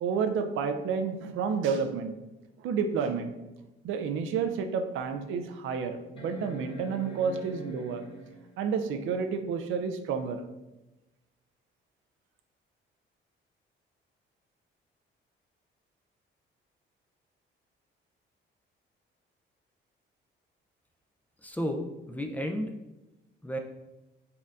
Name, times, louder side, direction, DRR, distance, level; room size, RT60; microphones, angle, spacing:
voice 1, 0.0-2.1 2.6-3.3 3.8-8.0 8.6-10.4, right 6 dB, 85° right, 7 dB, 0.5 m, -30 dB
sound 1, 6.2-8.6 10.3-10.4, equal, 25° left, 1.1 m, -44 dB
voice 2, 21.4-22.7 23.4-23.6, equal, 10° left, 4 dB, 0.4 m, -32 dB
4.2 x 3.9 x 2.4 m, 1.0 s
cardioid pair, 125°, 20 cm